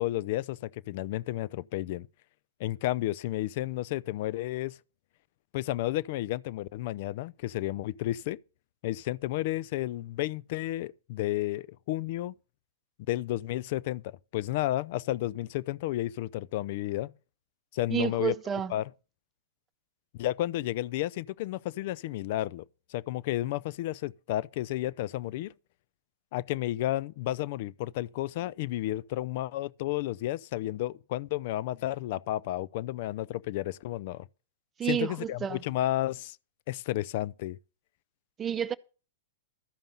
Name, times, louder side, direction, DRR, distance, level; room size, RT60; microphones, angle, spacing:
voice 1, 0.0-2.1 2.6-4.8 5.5-8.4 8.8-12.3 13.1-17.1 17.7-18.3 18.7-18.9 20.1-22.6 22.9-25.5 26.3-34.3 34.8-36.4 36.7-37.6, left 15 dB, 55° left, 0.5 m, -32 dB
voice 2, 17.9-18.7 34.8-35.6 38.4-38.7, right 9 dB, 25° right, 0.7 m, -30 dB
13.0 x 5.4 x 6.9 m
hypercardioid pair, 110°, 0 cm